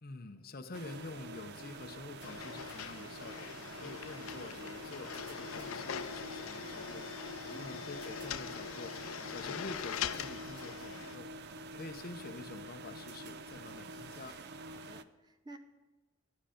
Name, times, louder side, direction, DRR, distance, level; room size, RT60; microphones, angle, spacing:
voice 1, 0.0-7.1 7.4-9.0 9.3-11.3 11.7-14.4, left 3 dB, 45° left, 9 dB, 0.7 m, -47 dB
sound 1, 0.7-15.0, right 2 dB, 55° right, 0.4 m, -47 dB
sound 2, 2.2-11.2, left 8 dB, 85° left, 0.4 m, -42 dB
voice 2, 3.6-4.0 7.5-7.8 14.7-15.6, right 3 dB, 20° right, 8 dB, 0.7 m, -54 dB
11.5 x 9.9 x 5.1 m, 1.2 s
head